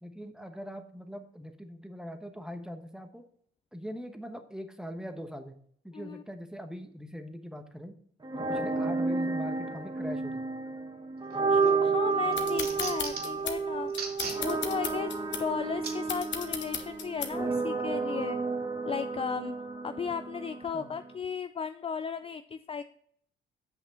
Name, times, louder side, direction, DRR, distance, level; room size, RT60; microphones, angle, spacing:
voice 1, 0.0-3.2 3.7-5.6 5.8-8.0 8.5-10.6 20.7-20.9, equal, 5° right, 7 dB, 1.1 m, -42 dB
sound 1, 8.2-21.2, right 4 dB, 20° right, 1.4 m, -31 dB
voice 2, 8.6-8.9 11.5-13.9 14.4-18.4 18.9-19.6 19.8-22.8, left 6 dB, 30° left, 10 dB, 0.4 m, -35 dB
sound 2, 11.3-11.7 12.1-13.4 13.9-14.4 14.9-15.0 15.8-16.0 16.7-16.9, right 4 dB, 50° right, 2.4 m, -37 dB
sound 3, 12.3-17.6, left 8 dB, 70° left, 1.2 m, -37 dB
8.1 x 5.9 x 4.3 m, 0.62 s
cardioid pair, 90°, 20 cm